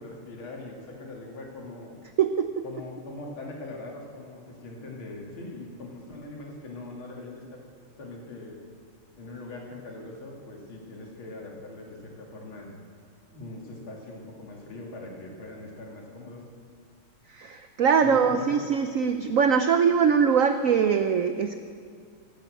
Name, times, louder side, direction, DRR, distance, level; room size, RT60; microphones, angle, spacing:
voice 1, 0.0-2.0 2.6-7.6 8.0-8.6 9.2-12.7 13.3-16.4 18.0-18.6, left 2 dB, 85° left, -1 dB, 3.1 m, -41 dB
voice 2, 2.2-2.6 17.3-21.6, right 6 dB, 85° right, 8 dB, 0.7 m, -22 dB
16.5 x 8.9 x 7.8 m, 2.1 s
omnidirectional pair, 2.2 m